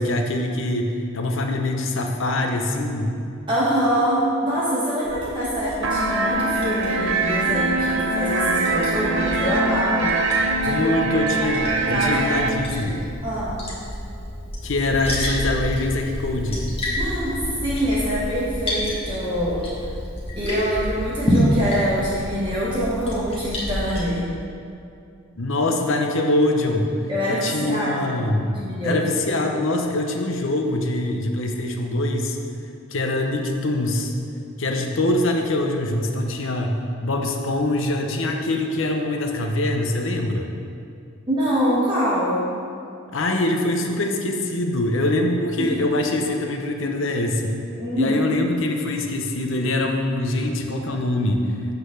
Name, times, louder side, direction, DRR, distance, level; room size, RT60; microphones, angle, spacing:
voice 1, 0.0-3.2 10.6-13.1 14.6-16.7 25.4-26.9 27.3-28.6 28.8-32.4 32.9-34.1 34.6-40.5 43.1-47.5 48.0-51.5, left 1 dB, 60° left, 3 dB, 0.7 m, -23 dB
voice 2, 3.5-10.2 10.6-11.0 11.4-12.2 13.2-13.6 17.0-19.7 20.4-24.3 27.1-28.2 28.5-29.0 41.3-42.4 45.6-45.8 47.8-48.2, equal, 20° right, -9 dB, 1.3 m, -25 dB
Liquid, 5.0-24.0, equal, 25° left, 1.4 m, -29 dB
sound 1, 5.8-12.5, right 2 dB, 65° right, 0.6 m, -23 dB
7.9 x 4.0 x 6.5 m, 2.5 s
head